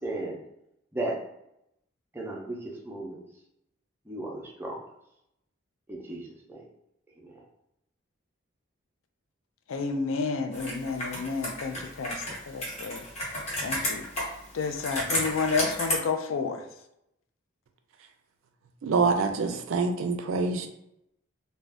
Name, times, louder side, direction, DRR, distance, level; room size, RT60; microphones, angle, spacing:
voice 1, 0.0-0.4 0.9-1.2 2.1-2.6 2.8-3.2 4.1-4.8 5.9-6.2 6.5-6.6, right 2 dB, 10° right, -3 dB, 0.5 m, -34 dB
voice 2, 9.7-13.1 13.6-14.1 14.5-16.7, left 4 dB, 80° left, 7 dB, 0.4 m, -30 dB
Computer keyboard, 10.5-15.9, left 1 dB, 35° left, 0.8 m, -33 dB
voice 3, 18.8-20.7, right 4 dB, 80° right, 6 dB, 0.4 m, -26 dB
2.5 x 2.2 x 3.3 m, 0.81 s
head